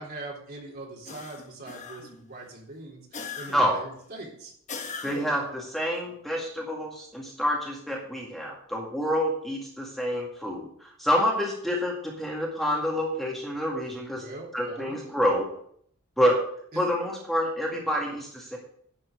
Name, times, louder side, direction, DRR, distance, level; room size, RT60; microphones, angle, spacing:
voice 1, 0.0-4.5 13.8-15.1 16.7-16.8, right 2 dB, 45° right, -2 dB, 3.7 m, -42 dB
sound 1, 1.1-2.3 3.1-3.9 4.7-5.5, left 4 dB, 35° left, 1.2 m, -39 dB
voice 2, 5.0-14.2 14.5-15.5 16.2-16.5 16.8-18.6, equal, ahead, -2 dB, 2.0 m, -27 dB
11.0 x 6.2 x 7.9 m, 0.64 s
head